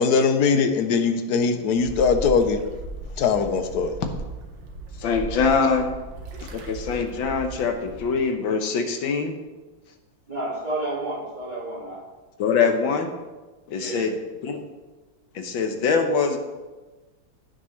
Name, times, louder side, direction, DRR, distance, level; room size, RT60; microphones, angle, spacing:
voice 1, 0.0-2.6 3.2-3.9, left 5 dB, 65° left, 8 dB, 1.2 m, -21 dB
sound 1, 1.7-8.2, right 2 dB, 70° right, 1.8 m, -37 dB
voice 2, 5.0-5.9 6.5-9.4 12.4-13.2 13.7-14.6 15.4-16.4, left 5 dB, 80° left, 5 dB, 1.8 m, -23 dB
voice 3, 10.3-12.0 13.7-14.0, right 2 dB, 25° right, -3 dB, 2.1 m, -31 dB
15.5 x 6.4 x 3.2 m, 1.2 s
omnidirectional pair, 2.1 m